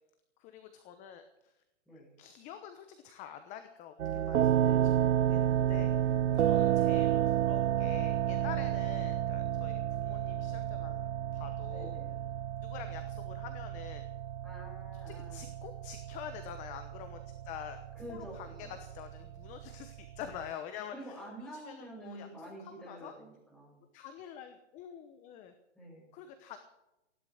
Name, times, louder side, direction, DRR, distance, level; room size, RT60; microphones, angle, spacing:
voice 1, 0.4-1.6 1.9-11.9 12.6-14.1 14.9-17.8 18.1-22.3 22.6-23.1 23.9-25.5 26.1-26.6, left 9 dB, 20° left, 8 dB, 0.9 m, -47 dB
voice 2, 1.9-2.2 6.3-6.5 11.7-12.2 14.4-15.5 17.9-18.7 20.9-23.8 25.7-26.1, right 1 dB, ahead, -6 dB, 7.1 m, -48 dB
sound 1, 4.0-20.5, right 11 dB, 90° right, 0.7 m, -31 dB
16.0 x 11.5 x 6.5 m, 0.93 s
hypercardioid pair, 150°, 36 cm